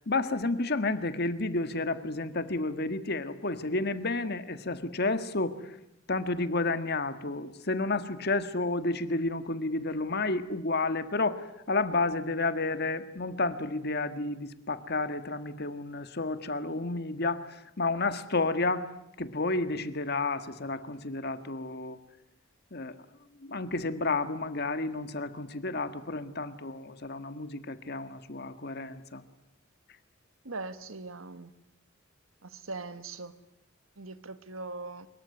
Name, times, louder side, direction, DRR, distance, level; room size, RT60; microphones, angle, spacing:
voice 1, 0.1-5.6 6.1-18.9 19.2-22.0 22.7-22.9 23.4-29.2, left 3 dB, 50° left, 1.7 m, -31 dB
voice 2, 30.4-31.5 32.4-33.3 34.0-35.1, right 3 dB, 80° right, 1.7 m, -40 dB
25.0 x 22.5 x 9.6 m
head